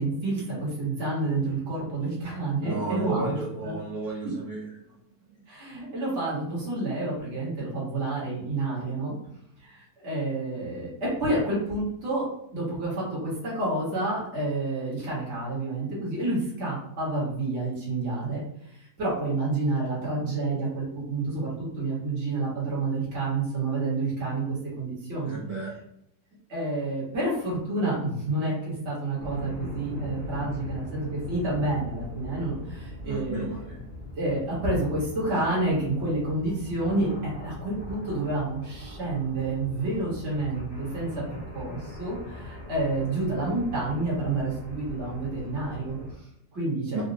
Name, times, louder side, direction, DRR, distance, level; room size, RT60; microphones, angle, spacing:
voice 1, 0.0-3.3 3.6-3.8 5.5-9.1 9.6-12.2 12.5-25.4 26.5-33.4 34.1-47.0, right 2 dB, 50° right, -7 dB, 1.6 m, -29 dB
voice 2, 2.6-4.9 5.3-5.4 25.3-25.7 33.0-33.8 46.9-47.0, right 3 dB, 75° right, -6 dB, 1.9 m, -34 dB
sound 1, 29.2-46.1, left 2 dB, 15° left, 1.2 m, -40 dB
3.9 x 2.4 x 2.7 m, 0.77 s
omnidirectional pair, 1.6 m